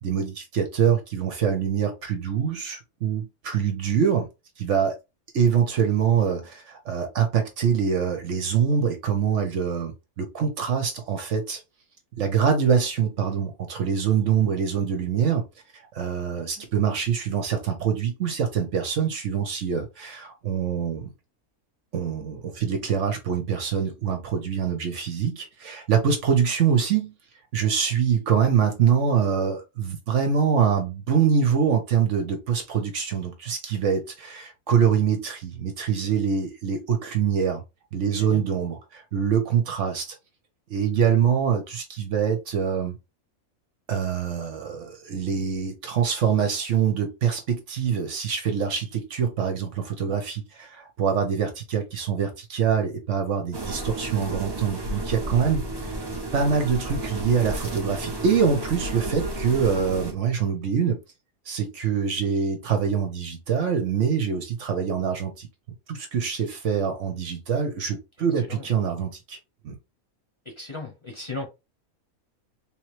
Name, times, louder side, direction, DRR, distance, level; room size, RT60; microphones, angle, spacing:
voice 1, 0.0-4.3 4.6-5.0 5.3-11.6 12.2-15.5 15.7-21.1 21.9-27.1 27.5-37.6 37.9-40.2 40.7-42.9 43.9-56.0 56.3-61.0 61.5-65.5 65.9-69.4 69.6-69.8, right 7 dB, 60° right, 1.1 m, -24 dB
voice 2, 16.3-16.6 38.1-38.4 68.4-68.7 70.4-71.5, left 3 dB, 25° left, 1.0 m, -37 dB
sound 1, 53.5-60.1, right 2 dB, 20° right, 0.7 m, -32 dB
3.5 x 3.1 x 3.1 m
omnidirectional pair, 1.5 m